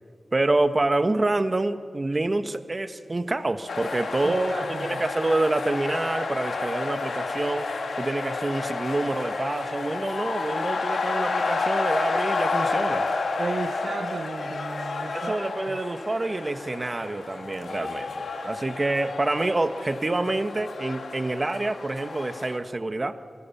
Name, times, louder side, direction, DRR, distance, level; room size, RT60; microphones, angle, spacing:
voice 1, 0.3-7.7 8.0-13.1 13.8-13.9 15.1-23.2, right 2 dB, 35° right, 1.4 m, -27 dB
sound 1, 3.7-22.6, left 3 dB, 90° left, 2.8 m, -30 dB
voice 2, 4.2-5.1 13.4-15.4 15.7-15.8, right 4 dB, 70° right, 0.8 m, -34 dB
29.5 x 24.5 x 7.3 m
wide cardioid pair, 85°, 0 cm